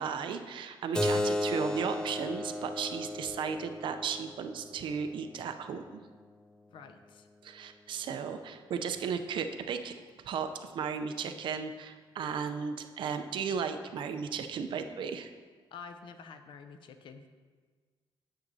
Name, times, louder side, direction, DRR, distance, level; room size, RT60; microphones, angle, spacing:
voice 1, 0.0-6.0 7.4-9.9 10.3-15.3, right 6 dB, 65° right, 8 dB, 0.5 m, -35 dB
Keyboard (musical), 0.9-6.1, left 1 dB, 10° left, 0.4 m, -35 dB
voice 2, 6.7-7.3 15.7-17.3, left 5 dB, 65° left, 8 dB, 0.6 m, -48 dB
8.8 x 7.8 x 2.7 m, 1.5 s
cardioid pair, 135°, 9 cm